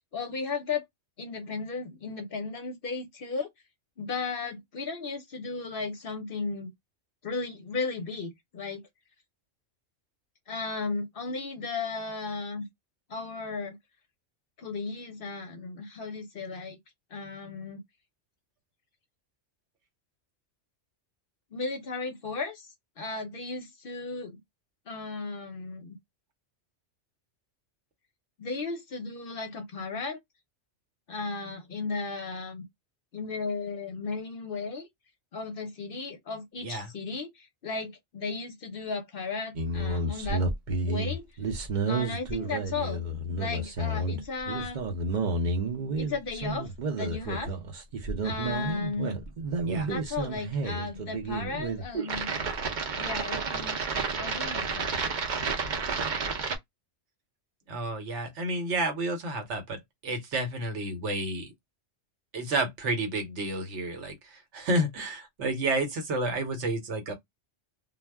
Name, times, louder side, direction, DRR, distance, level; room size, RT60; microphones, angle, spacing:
voice 1, 0.1-0.8 1.2-3.5 4.0-6.7 7.2-8.8 10.5-12.7 13.1-13.8 14.6-16.8 17.1-17.8 21.5-24.4 24.9-26.0 28.4-30.2 31.1-32.6 33.1-34.9 35.3-40.5 40.8-41.3 41.9-43.1 43.3-44.9 46.0-47.5 48.2-49.1 49.9-52.4 53.0-53.8 54.2-55.0, left 4 dB, 60° left, 0.7 m, -35 dB
sound 1, 39.6-56.6, right 3 dB, 50° right, 0.6 m, -31 dB
voice 2, 57.7-61.5 62.3-67.1, right 2 dB, 70° right, 1.1 m, -30 dB
2.2 x 2.0 x 3.3 m
omnidirectional pair, 1.3 m